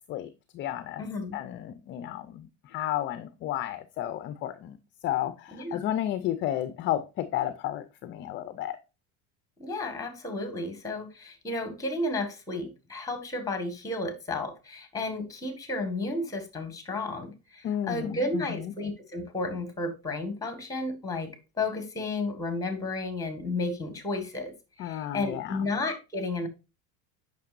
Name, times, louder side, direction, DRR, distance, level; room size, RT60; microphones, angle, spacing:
voice 1, 0.1-1.0 1.3-4.8 5.0-8.8 17.6-18.7 24.8-25.7, left 12 dB, 30° left, 0.5 m, -32 dB
voice 2, 1.0-1.4 5.5-5.8 9.6-21.3 21.6-24.5 24.8-26.5, left 2 dB, 10° left, 1.6 m, -32 dB
8.6 x 6.0 x 2.5 m
supercardioid pair, 150°, 38 cm